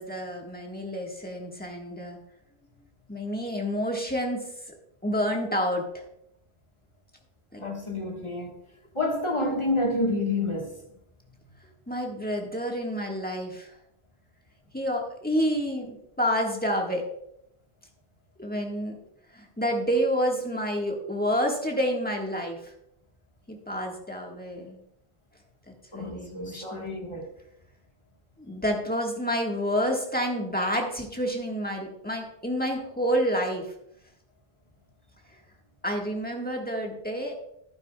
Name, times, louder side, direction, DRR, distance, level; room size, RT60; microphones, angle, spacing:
voice 1, 0.0-2.2 3.1-4.4 5.0-6.0 7.5-7.6 11.9-13.7 14.7-17.1 18.4-19.0 19.3-22.7 23.5-24.8 25.9-26.9 28.4-33.7 35.8-37.3, equal, 10° left, 1.4 m, -29 dB
voice 2, 7.6-8.5 8.9-10.8 25.9-27.2, left 2 dB, 30° left, 1.4 m, -28 dB
11.0 x 9.9 x 2.2 m
omnidirectional pair, 1.1 m